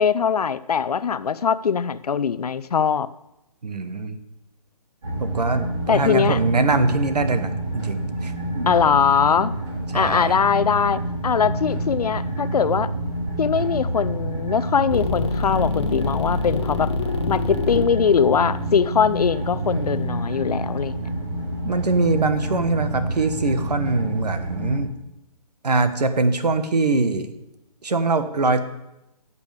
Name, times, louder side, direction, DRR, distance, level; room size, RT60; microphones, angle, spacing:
voice 1, 0.0-3.1 5.9-6.4 8.7-9.5 9.9-12.9 13.4-16.9 17.3-21.0, left 6 dB, 70° left, 16 dB, 0.6 m, -21 dB
voice 2, 3.6-4.2 5.2-8.7 9.9-10.4 21.6-24.9 25.6-27.3 27.8-28.6, right 3 dB, 80° right, 9 dB, 1.3 m, -23 dB
sound 1, 5.0-24.8, right 1 dB, 45° right, 4.9 m, -28 dB
sound 2, 14.9-20.0, left 4 dB, 45° left, 1.0 m, -28 dB
14.5 x 8.3 x 3.5 m, 0.89 s
hypercardioid pair, 160°, 20 cm